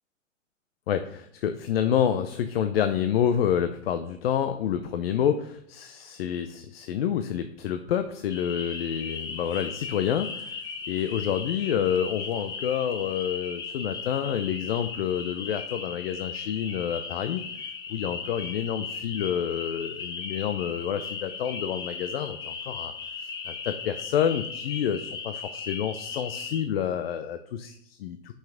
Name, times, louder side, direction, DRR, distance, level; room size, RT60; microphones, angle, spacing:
voice 1, 0.9-10.6 10.9-17.4 17.9-22.9 23.2-28.3, left 9 dB, 50° left, 9 dB, 0.6 m, -28 dB
sound 1, 8.3-26.6, left 5 dB, 10° left, 0.6 m, -37 dB
5.9 x 5.7 x 5.7 m, 0.70 s
hypercardioid pair, 130°, 39 cm